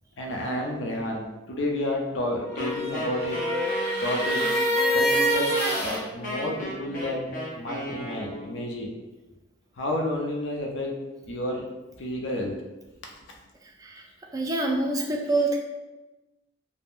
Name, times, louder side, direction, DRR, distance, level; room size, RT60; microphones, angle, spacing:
voice 1, 0.2-3.4 4.0-4.5 4.9-8.9 9.8-11.0 11.3-11.6 12.0-12.6, left 1 dB, 90° left, 0 dB, 0.5 m, -30 dB
sound 1, 2.4-6.0, equal, 10° left, 1.2 m, -26 dB
Wind instrument woodwind instrument, 2.6-8.6, left 1 dB, 45° left, 0.7 m, -34 dB
voice 2, 14.3-15.6, right 2 dB, 20° right, 0 dB, 0.3 m, -26 dB
3.4 x 2.0 x 2.4 m, 1.1 s
head